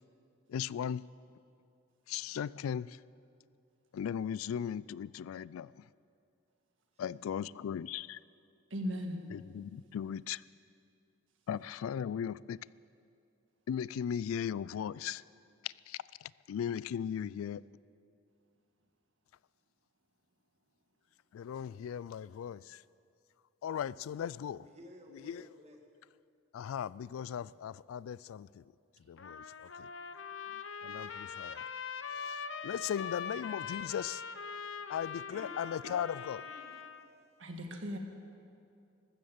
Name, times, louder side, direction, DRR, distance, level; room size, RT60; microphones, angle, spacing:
voice 1, 0.5-1.0 2.1-3.0 3.9-5.8 7.0-8.2 9.3-10.4 11.5-12.6 13.7-15.2 15.6-17.6 21.3-22.8 23.6-24.6 25.2-25.4 26.5-28.6 29.1-29.9 30.8-31.7 32.2-32.4 32.6-34.2 34.9-36.4, left 8 dB, 85° left, 19 dB, 0.3 m, -37 dB
voice 2, 8.7-9.2 37.4-38.0, equal, 65° right, 4 dB, 1.7 m, -37 dB
voice 3, 24.6-25.8 35.3-36.9, equal, 30° right, 2 dB, 1.8 m, -53 dB
Trumpet, 29.2-37.1, left 6 dB, 65° left, 0.7 m, -42 dB
14.0 x 13.0 x 7.3 m, 2.5 s
head